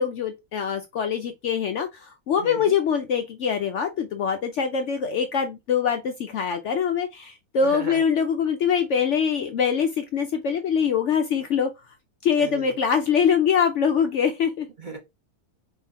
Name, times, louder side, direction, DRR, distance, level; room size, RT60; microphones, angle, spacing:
voice 1, 0.0-11.7 12.2-14.7, left 7 dB, 65° left, 0.8 m, -23 dB
voice 2, 2.4-2.8 7.6-8.0 12.4-12.8 14.8-15.0, right 3 dB, 35° right, 0.9 m, -36 dB
4.3 x 3.7 x 2.7 m
omnidirectional pair, 1.6 m